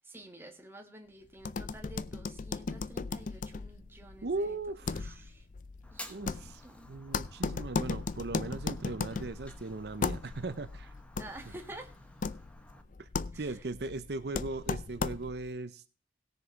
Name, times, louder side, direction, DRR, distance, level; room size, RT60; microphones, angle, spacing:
voice 1, 0.0-4.6 5.0-5.5 5.9-6.9 11.2-11.9 13.3-13.6, right 1 dB, 15° right, 1.5 m, -50 dB
sound 1, 1.4-15.5, left 4 dB, 45° left, 0.4 m, -37 dB
voice 2, 4.2-5.2 6.1-6.6 6.9-10.9 13.0-13.1 13.3-15.8, right 2 dB, 70° right, 0.7 m, -38 dB
Fire, 5.8-12.8, left 1 dB, 5° left, 1.1 m, -53 dB
17.5 x 6.7 x 4.6 m
head